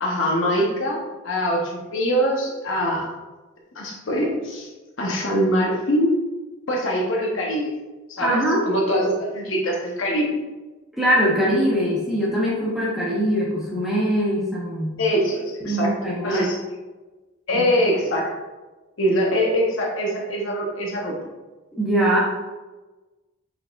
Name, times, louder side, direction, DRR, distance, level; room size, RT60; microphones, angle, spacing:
voice 1, 0.0-3.0 3.7-4.7 5.0-6.1 6.7-7.7 8.1-10.3 15.0-15.9 16.2-16.6 17.5-18.3 19.0-21.1, equal, 75° left, -2 dB, 0.8 m, -23 dB
voice 2, 8.2-8.7 10.9-15.0 15.6-16.5 17.5-17.6 21.7-22.2, equal, ahead, -8 dB, 0.8 m, -22 dB
5.0 x 3.9 x 2.4 m, 1.2 s
head